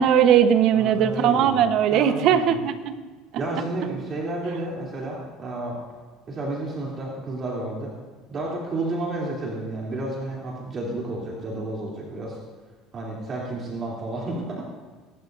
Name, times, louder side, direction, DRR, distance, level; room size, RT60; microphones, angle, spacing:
voice 1, 0.0-2.9, right 9 dB, 65° right, 9 dB, 1.2 m, -19 dB
voice 2, 0.7-1.6 1.9-2.6 3.4-5.8 6.3-7.9 8.3-12.4 12.9-14.7, right 2 dB, 35° right, -4 dB, 3.4 m, -31 dB
25.0 x 12.5 x 2.7 m, 1.4 s
supercardioid pair, 110°, 0 cm